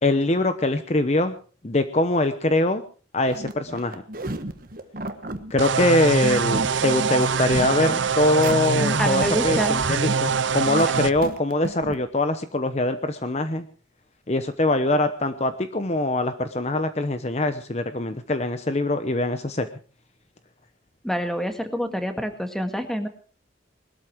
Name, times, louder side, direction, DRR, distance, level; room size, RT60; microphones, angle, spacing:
voice 1, 0.0-1.3 1.6-2.8 3.1-4.0 5.5-13.7 14.3-19.7, left 2 dB, 35° left, 10 dB, 0.9 m, -23 dB
sound 1, 3.2-12.0, right 1 dB, 50° right, 1.3 m, -33 dB
sound 2, 5.6-11.1, right 6 dB, 80° right, 0.7 m, -24 dB
voice 2, 9.0-9.8 21.0-23.1, equal, ahead, 6 dB, 1.7 m, -27 dB
20.5 x 13.0 x 4.6 m, 0.40 s
head